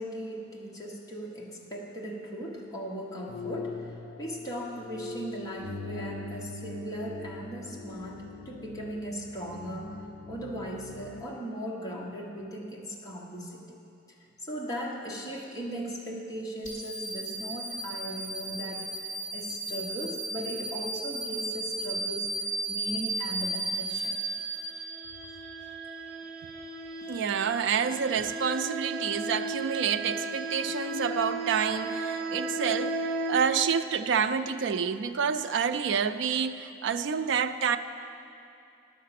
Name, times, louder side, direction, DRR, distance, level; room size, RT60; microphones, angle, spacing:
voice 1, 0.0-13.8 14.4-18.9 19.3-22.3 22.7-24.2, equal, 15° left, -3 dB, 1.0 m, -38 dB
sound 1, 3.3-11.2, left 4 dB, 65° left, 0.5 m, -42 dB
sound 2, 16.6-25.1, right 2 dB, 35° left, 2.4 m, -34 dB
sound 3, 24.3-33.3, right 2 dB, 25° right, 1.0 m, -35 dB
voice 2, 27.1-37.8, right 7 dB, 60° right, 10 dB, 0.3 m, -28 dB
11.0 x 6.5 x 5.8 m, 2.7 s
head